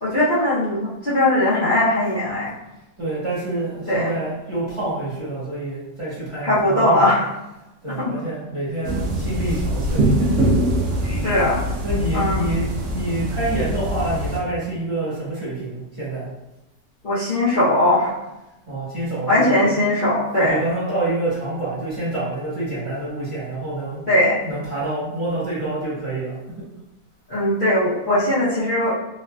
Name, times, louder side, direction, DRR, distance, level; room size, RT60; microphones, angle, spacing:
voice 1, 0.0-2.5 3.9-4.1 6.4-7.3 8.0-8.1 11.0-11.6 12.1-12.5 17.0-18.1 19.3-20.6 24.1-24.4 27.3-28.9, left 1 dB, 45° left, -13 dB, 0.8 m, -19 dB
voice 2, 3.0-7.1 7.8-10.5 11.8-16.3 18.7-19.7 20.4-24.0 24.4-26.4, right 2 dB, 25° right, -11 dB, 1.0 m, -27 dB
sound 1, 8.8-14.4, right 1 dB, 65° right, 0.8 m, -23 dB
3.1 x 2.6 x 2.2 m, 0.95 s
omnidirectional pair, 1.6 m